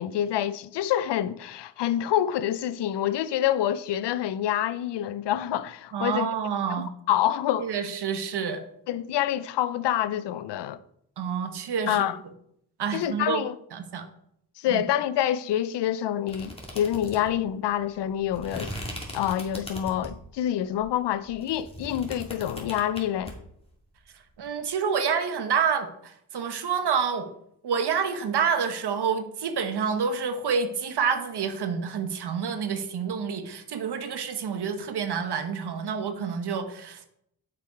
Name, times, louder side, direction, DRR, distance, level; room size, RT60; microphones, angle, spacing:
voice 1, 0.0-6.3 7.1-7.7 8.9-10.8 11.9-12.2 12.9-13.5 14.6-18.7 19.1-23.3, left 11 dB, 75° left, 0.5 m, -27 dB
voice 2, 5.9-6.9 7.6-8.6 11.2-12.1 12.8-13.4 13.7-14.0 14.7-14.8 24.4-27.3 27.6-37.1, right 6 dB, 65° right, 1.1 m, -28 dB
sound 1, 16.3-20.3 20.8-23.3, equal, 15° left, 2.2 m, -39 dB
6.8 x 4.6 x 4.8 m
cardioid pair, 55°, 42 cm